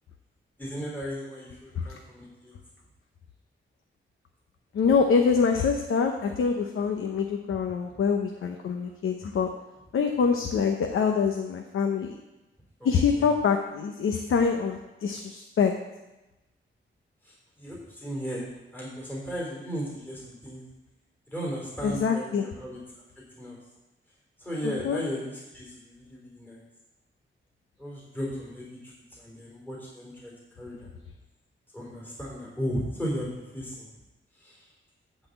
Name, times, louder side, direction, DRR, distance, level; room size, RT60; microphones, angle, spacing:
voice 1, 0.6-2.5 12.8-13.3 17.2-18.5 18.7-20.6 21.3-22.8 23.4-23.6 24.4-26.6 27.8-28.9 29.2-30.9 31.7-33.9 34.4-34.6, equal, 10° left, -5 dB, 3.7 m, -36 dB
voice 2, 4.7-9.5 9.9-12.2 12.8-15.7 21.8-22.4 24.6-25.0, left 5 dB, 90° left, 4 dB, 0.8 m, -25 dB
12.5 x 4.2 x 8.0 m, 1.0 s
wide cardioid pair, 110°, 21 cm